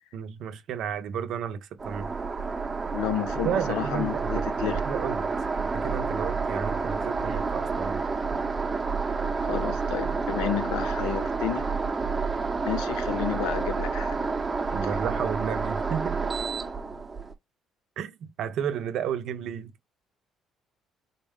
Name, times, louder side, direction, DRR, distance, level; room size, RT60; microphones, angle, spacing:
voice 1, 0.1-2.1 3.4-5.3 5.6-8.0 14.7-16.3 18.0-19.7, right 8 dB, 70° right, 0.6 m, -32 dB
sound 1, 1.8-17.3, right 4 dB, 25° right, 0.8 m, -29 dB
voice 2, 2.9-4.8 9.4-11.7 12.6-14.2, left 11 dB, 90° left, 0.5 m, -31 dB
4.0 x 2.1 x 3.5 m
cardioid pair, 85°, 0 cm